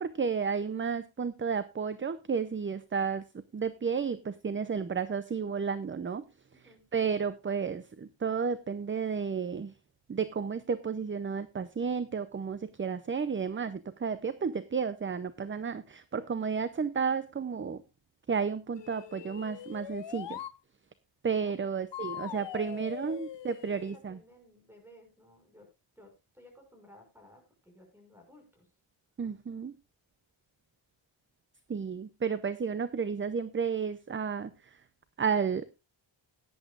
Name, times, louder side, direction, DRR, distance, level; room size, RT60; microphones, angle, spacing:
voice 1, 0.0-3.2 3.5-6.2 6.9-9.7 10.1-17.8 18.3-20.4 21.2-24.2 29.2-29.7 31.7-34.5 35.2-35.7, right 6 dB, 25° right, 13 dB, 0.5 m, -32 dB
voice 2, 6.5-6.8 21.5-23.2 23.4-25.7 26.0-28.7, left 1 dB, 5° right, 2 dB, 5.9 m, -57 dB
sound 1, 18.8-20.6 21.9-24.0, left 12 dB, 60° left, 0.6 m, -42 dB
17.0 x 10.5 x 2.4 m, 0.25 s
wide cardioid pair, 135°, 50 cm